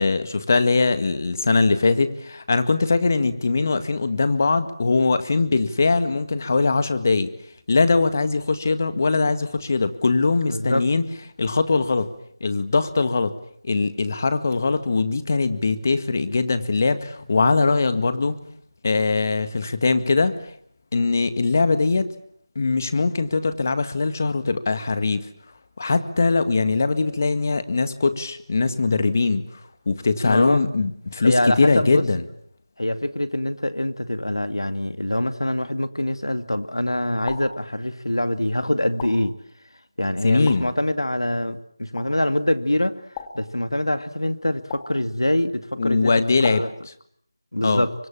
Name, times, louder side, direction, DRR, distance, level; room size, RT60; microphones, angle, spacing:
voice 1, 0.0-7.3 7.7-11.0 11.4-12.1 12.4-13.4 13.6-18.4 18.8-20.4 20.9-22.1 22.6-25.3 25.8-29.6 29.9-32.2 40.2-40.7 45.8-46.7 47.6-47.8, left 3 dB, 40° left, 11 dB, 1.9 m, -21 dB
voice 2, 10.5-10.9 30.2-30.6 31.2-32.0 32.8-39.3 40.0-46.1 46.4-46.7 47.5-47.9, left 1 dB, 90° left, 11 dB, 2.3 m, -24 dB
sound 1, 37.3-37.7 39.0-39.4 40.5-40.8 42.0-42.3 43.2-43.6 44.7-45.1 46.4-46.8, left 6 dB, 15° left, 2.0 m, -38 dB
29.5 x 25.0 x 7.4 m, 0.65 s
figure-of-eight pair, 170°, 2 cm